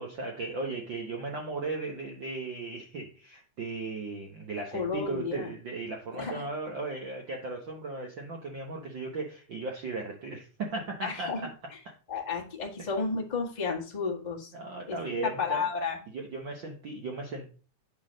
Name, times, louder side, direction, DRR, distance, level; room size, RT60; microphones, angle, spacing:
voice 1, 0.0-11.5 11.8-11.9 12.8-12.9 14.5-15.7 16.1-17.5, right 3 dB, 55° right, 1 dB, 1.3 m, -36 dB
voice 2, 4.7-5.5 6.1-6.5 11.0-11.4 12.1-14.5 14.9-16.0, left 5 dB, 20° left, -1 dB, 1.4 m, -32 dB
8.8 x 4.0 x 6.3 m, 0.37 s
omnidirectional pair, 3.4 m